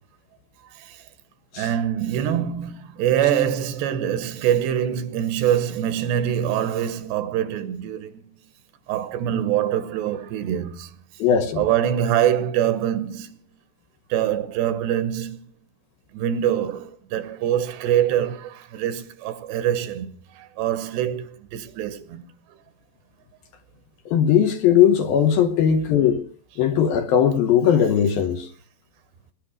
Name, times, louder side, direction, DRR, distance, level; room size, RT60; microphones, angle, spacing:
voice 1, 1.6-8.2 8.9-10.9 11.6-13.4 14.1-15.4 16.1-22.2, right 10 dB, 75° right, 3.1 m, -24 dB
voice 2, 11.2-11.7 24.1-26.2 26.6-28.5, left 8 dB, 70° left, 2.5 m, -19 dB
20.0 x 11.0 x 6.2 m
omnidirectional pair, 5.1 m